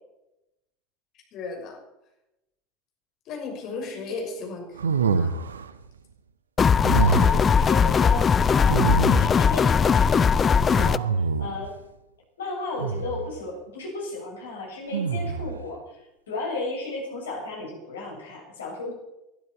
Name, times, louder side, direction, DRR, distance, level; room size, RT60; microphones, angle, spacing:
voice 1, 1.3-1.8 3.3-5.4, left 3 dB, 40° left, 0 dB, 6.1 m, -35 dB
voice 2, 3.6-4.3 6.8-11.7 12.4-16.0 16.3-18.9, left 3 dB, 70° left, -1 dB, 6.9 m, -35 dB
sound 1, 4.8-5.7 6.8-7.5 8.7-9.5 10.7-11.7 12.8-13.3 14.9-15.6, right 5 dB, 75° right, 0.8 m, -26 dB
sound 2, 6.6-11.0, left 6 dB, 25° left, 0.5 m, -19 dB
20.0 x 12.5 x 4.7 m, 0.91 s
figure-of-eight pair, 75°, 0 cm